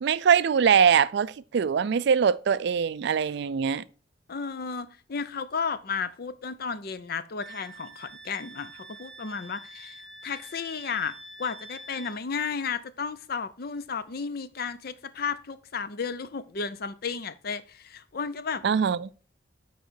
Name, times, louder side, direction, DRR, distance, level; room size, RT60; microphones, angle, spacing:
voice 1, 0.0-3.8 18.6-19.1, right 7 dB, 60° right, 0.4 m, -22 dB
voice 2, 4.3-18.6, left 5 dB, 50° left, 0.6 m, -33 dB
Wind instrument woodwind instrument, 7.4-12.2, right 1 dB, 5° left, 1.6 m, -46 dB
8.3 x 4.9 x 4.3 m
head